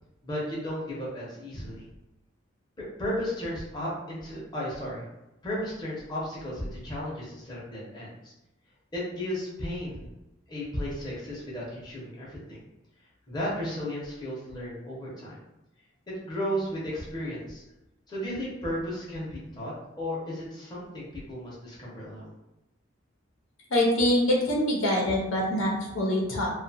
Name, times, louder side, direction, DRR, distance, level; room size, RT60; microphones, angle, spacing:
voice 1, 0.2-1.9 2.8-5.0 5.4-8.3 8.9-10.1 10.5-12.6 13.3-15.4 16.1-17.6 18.1-22.3, equal, 20° left, -7 dB, 0.7 m, -34 dB
voice 2, 23.7-26.5, left 1 dB, 85° left, -3 dB, 0.8 m, -24 dB
2.6 x 2.3 x 2.6 m, 0.94 s
head